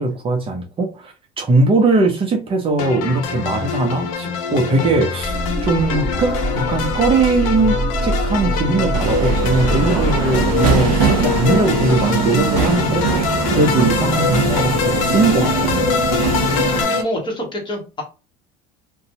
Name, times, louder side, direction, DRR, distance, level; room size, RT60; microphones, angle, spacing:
voice 1, 0.0-13.1 13.5-15.8, right 3 dB, 30° right, 0.7 m, -20 dB
sound 1, 2.8-17.0, left 6 dB, 85° left, 0.6 m, -23 dB
sound 2, 5.2-12.6, right 1 dB, 5° left, 1.0 m, -25 dB
Subway metro underground, 8.9-16.8, right 5 dB, 90° right, 0.6 m, -21 dB
voice 2, 16.3-18.0, left 1 dB, 30° left, 1.3 m, -26 dB
2.6 x 2.2 x 2.8 m
supercardioid pair, 95°, 17 cm